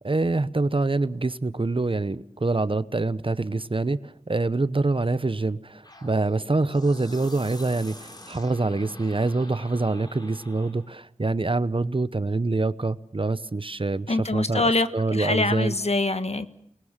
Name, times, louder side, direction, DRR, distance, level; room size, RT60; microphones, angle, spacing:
voice 1, 0.0-15.8, right 3 dB, 45° right, 0.9 m, -25 dB
sound 1, 5.8-10.9, left 1 dB, 35° left, 3.6 m, -45 dB
voice 2, 14.1-16.5, left 2 dB, 60° left, 1.5 m, -24 dB
28.5 x 20.0 x 7.4 m
wide cardioid pair, 60°, 12 cm